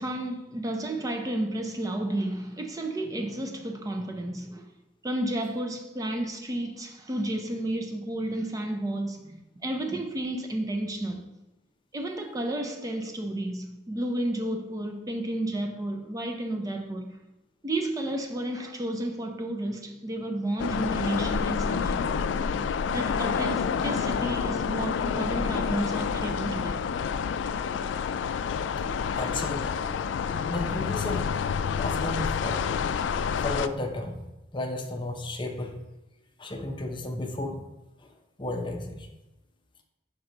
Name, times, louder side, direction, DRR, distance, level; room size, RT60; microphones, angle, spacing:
voice 1, 0.0-4.7 5.0-11.3 11.9-17.1 17.6-22.2 22.9-26.8, right 1 dB, 20° right, 0.5 m, -32 dB
sound 1, 20.6-33.7, left 6 dB, 80° left, 0.3 m, -28 dB
voice 2, 29.2-29.7 30.5-31.3 31.8-32.9 33.4-34.2 34.5-35.7 36.4-37.7 38.0-38.1 38.4-39.1, left 2 dB, 25° left, 0.7 m, -33 dB
5.3 x 4.6 x 3.8 m
head